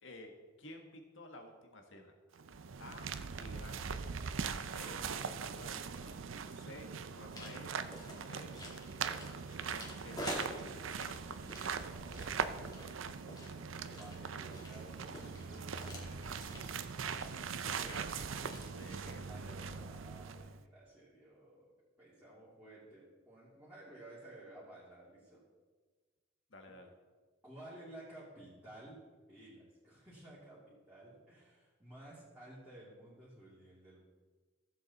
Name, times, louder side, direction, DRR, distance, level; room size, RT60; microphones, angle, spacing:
voice 1, 0.0-2.4 2.8-4.1 4.7-6.2 6.5-6.9 7.2-7.7 8.3-8.5 9.1-10.9 11.1-11.5 17.6-19.9 26.5-26.9, left 1 dB, 75° left, 3 dB, 1.6 m, -54 dB
sound 1, 2.3-20.6, right 6 dB, 85° right, 0.6 m, -41 dB
sound 2, 7.3-19.1, left 1 dB, 20° left, 2.2 m, -49 dB
voice 2, 11.7-13.0 13.9-16.7 19.3-25.4 27.4-29.0 29.3-34.0, right 1 dB, 5° right, -10 dB, 2.6 m, -55 dB
15.0 x 7.8 x 4.2 m, 1.4 s
head